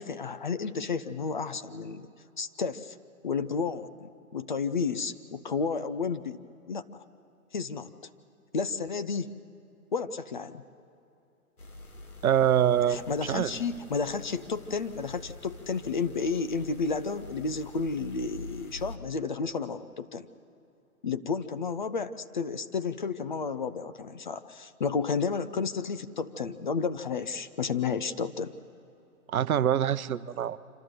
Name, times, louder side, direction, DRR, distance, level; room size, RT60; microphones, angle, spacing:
voice 1, 0.0-2.1 2.4-2.9 3.2-6.4 6.7-6.8 7.5-7.9 8.5-9.3 9.9-10.6 12.9-20.3 21.0-28.6, left 5 dB, 35° left, 12 dB, 0.5 m, -32 dB
sound 1, 11.6-19.0, left 2 dB, 90° left, 2.5 m, -46 dB
voice 2, 12.2-13.6 29.3-30.6, right 10 dB, 75° right, 15 dB, 0.7 m, -25 dB
26.5 x 13.5 x 7.6 m, 2.7 s
hypercardioid pair, 150°, 43 cm